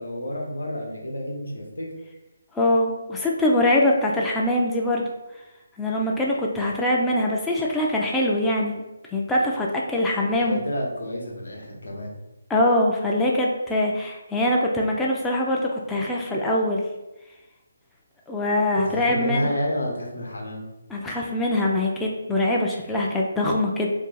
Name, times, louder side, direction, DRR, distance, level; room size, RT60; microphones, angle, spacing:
voice 1, 0.0-1.9 10.1-12.1 18.7-20.7, equal, 80° left, 0 dB, 0.9 m, -30 dB
voice 2, 2.5-5.1 5.8-8.8 9.1-10.6 12.5-16.8 18.3-19.5 20.9-23.9, left 1 dB, 5° left, -3 dB, 0.3 m, -23 dB
2.6 x 2.4 x 3.8 m, 1.0 s
figure-of-eight pair, 150°, 0 cm